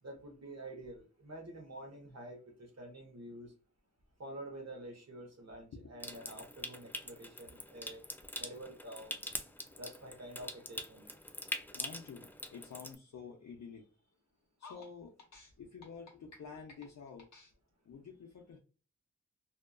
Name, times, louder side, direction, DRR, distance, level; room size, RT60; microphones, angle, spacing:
voice 1, 0.0-3.5 4.2-8.0 8.4-9.2 9.8-11.1, right 1 dB, 55° right, 2 dB, 0.9 m, -48 dB
Water tap faucet / Sink (filling or washing) / Trickle dribble, 6.0-13.0, left 1 dB, 5° left, 0.3 m, -44 dB
voice 2, 11.7-13.9 14.6-17.5 17.9-18.6, left 5 dB, 65° left, 1 dB, 0.5 m, -49 dB
2.8 x 2.3 x 2.2 m, 0.37 s
cardioid pair, 45°, 31 cm